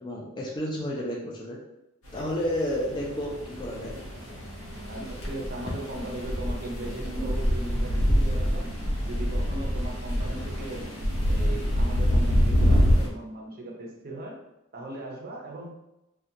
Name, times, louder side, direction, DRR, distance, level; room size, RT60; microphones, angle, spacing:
voice 1, 0.0-1.6 2.1-4.0, equal, 20° left, -5 dB, 0.4 m, -31 dB
sound 1, 2.1-13.1, equal, 85° left, 0.8 m, -26 dB
voice 2, 4.9-10.9 11.3-14.4 14.7-15.7, right 1 dB, 45° right, 0 dB, 0.5 m, -38 dB
2.4 x 2.1 x 2.7 m, 0.90 s
head